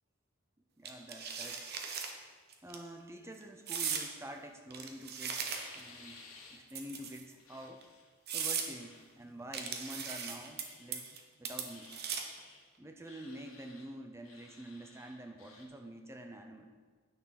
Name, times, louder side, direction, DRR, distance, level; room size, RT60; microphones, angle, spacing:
voice 1, 0.8-1.6 2.6-6.2 6.5-7.9 8.3-11.9 12.8-16.7, right 1 dB, 10° right, 4 dB, 0.6 m, -48 dB
sound 1, 0.9-2.1 2.5-2.8 3.7-4.1 4.7-5.9 6.7-7.3 7.8-7.9 8.3-8.7 9.5-10.6 10.9-11.2 11.5-12.4, right 7 dB, 45° right, 1.0 m, -38 dB
sound 2, 5.4-6.6 7.0-9.1 9.5-10.9 11.6-12.6 13.0-13.9 14.2-15.7, left 4 dB, 80° left, 1.7 m, -56 dB
9.4 x 6.3 x 5.8 m, 1.5 s
head